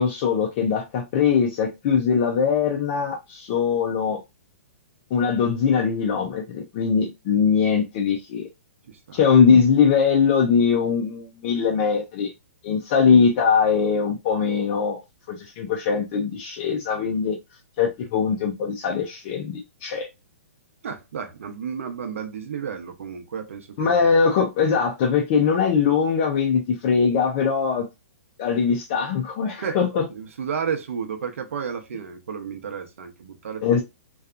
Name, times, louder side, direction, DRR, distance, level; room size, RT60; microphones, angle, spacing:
voice 1, 0.0-4.2 5.1-8.5 9.1-12.3 12.6-15.0 15.3-17.4 17.8-20.1 23.8-27.9 28.4-30.0 33.6-33.8, left 6 dB, 20° left, 0.4 m, -21 dB
voice 2, 8.9-9.2 20.8-24.0 29.6-29.8 30.1-33.8, right 7 dB, 65° right, 0.7 m, -32 dB
2.7 x 2.3 x 2.4 m
hypercardioid pair, 175°, 8 cm